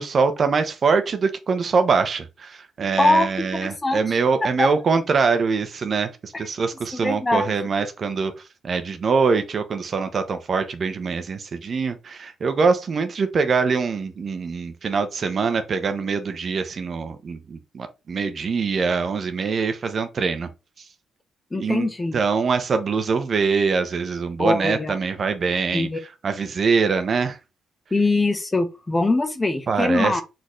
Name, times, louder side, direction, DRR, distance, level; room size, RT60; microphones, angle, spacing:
voice 1, 0.0-8.3 8.6-20.5 21.5-21.9 22.1-25.9 26.2-27.4 29.7-30.2, right 5 dB, 45° right, 0.8 m, -23 dB
voice 2, 2.9-4.7 6.3-6.5 6.9-7.5 21.5-22.1 24.4-24.9 25.7-26.0 27.9-30.2, left 2 dB, 20° left, 0.8 m, -23 dB
4.3 x 3.8 x 3.1 m
cardioid pair, 90°, 0 cm